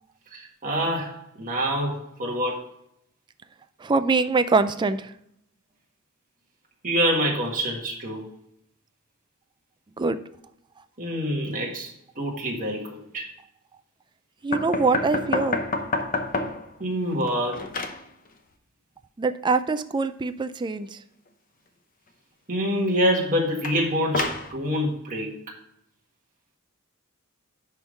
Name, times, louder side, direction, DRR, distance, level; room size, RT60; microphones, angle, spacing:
voice 1, 0.3-2.7 6.8-8.2 11.0-13.3 16.8-17.8 22.5-25.3, equal, 40° right, -1 dB, 1.7 m, -26 dB
voice 2, 3.8-5.1 10.0-10.2 14.4-15.6 19.2-21.0, right 4 dB, 20° right, 11 dB, 0.4 m, -23 dB
sound 1, 14.5-16.7 17.1-18.0 23.6-24.5, left 3 dB, 40° left, 0.8 m, -28 dB
10.5 x 3.6 x 5.2 m, 0.75 s
head